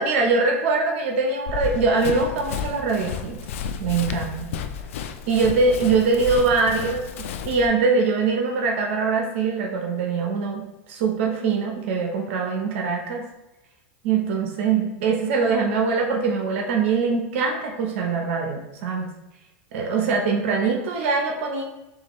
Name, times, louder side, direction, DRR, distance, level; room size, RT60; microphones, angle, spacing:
voice 1, 0.0-3.4 3.8-4.5 5.3-13.3 14.0-19.1 19.7-21.6, right 4 dB, 70° right, 1 dB, 0.8 m, -23 dB
Run, 1.5-7.7, left 7 dB, 75° left, 0.4 m, -32 dB
6.4 x 2.6 x 3.1 m, 1.0 s
hypercardioid pair, 115°, 7 cm